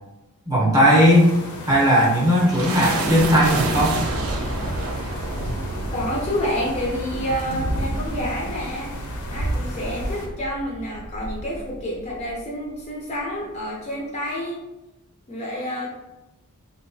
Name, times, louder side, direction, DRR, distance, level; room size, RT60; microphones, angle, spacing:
voice 1, 0.5-1.3 1.7-4.0, equal, 15° right, -6 dB, 0.7 m, -17 dB
sound 1, 0.9-10.3, left 1 dB, 85° left, 0.6 m, -37 dB
sound 2, 2.1-12.4, right 2 dB, 65° right, 0.4 m, -29 dB
voice 2, 5.9-8.9 9.3-14.6 15.3-15.9, equal, 30° left, -4 dB, 0.4 m, -28 dB
2.8 x 2.2 x 2.6 m, 0.98 s
head